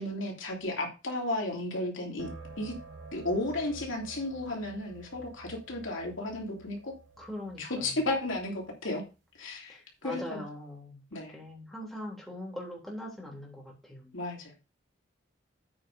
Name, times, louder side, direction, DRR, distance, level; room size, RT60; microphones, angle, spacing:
voice 1, 0.0-2.3 2.6-2.8 3.1-6.9 7.6-9.0 9.4-10.4 11.1-11.4 14.1-14.7, left 2 dB, 80° left, 0 dB, 3.0 m, -34 dB
sound 1, 2.2-8.7, right 3 dB, 60° right, 1.5 m, -49 dB
voice 2, 7.2-8.0 9.7-11.0 11.3-14.1, left 1 dB, ahead, -3 dB, 3.3 m, -42 dB
8.7 x 5.0 x 5.3 m, 0.29 s
head